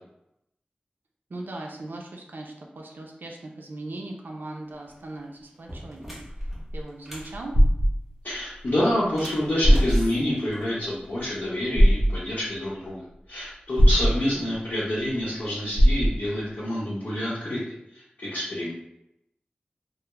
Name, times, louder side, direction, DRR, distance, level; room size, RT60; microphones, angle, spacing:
voice 1, 1.3-7.6 13.9-14.5, right 2 dB, 80° right, 0 dB, 0.4 m, -39 dB
sound 1, 4.8-5.0 5.5-7.4 9.0-11.1, equal, 5° right, 0.7 m, -39 dB
sound 2, 7.3-7.9 9.2-9.3 9.6-10.0 11.7-12.1 13.8-14.1 15.8-16.1, equal, 55° right, 0.8 m, -17 dB
voice 2, 8.2-18.7, left 1 dB, 75° left, -9 dB, 0.8 m, -28 dB
2.3 x 2.0 x 3.0 m, 0.81 s
wide cardioid pair, 45°, 3 cm